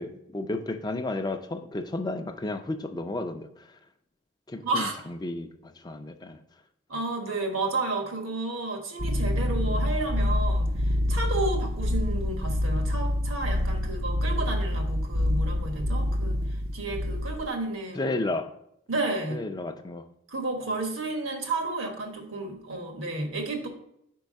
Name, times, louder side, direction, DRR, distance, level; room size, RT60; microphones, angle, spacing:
voice 1, 0.0-3.8 4.5-6.4 17.9-18.5 19.3-20.1, left 2 dB, 20° left, 0.4 m, -33 dB
voice 2, 4.6-4.9 6.9-16.4 16.7-18.1 18.9-19.4 20.3-23.7, right 2 dB, 85° right, 1.3 m, -31 dB
sound 1, 9.0-17.5, left 1 dB, 50° right, 0.5 m, -27 dB
4.8 x 4.6 x 5.2 m
head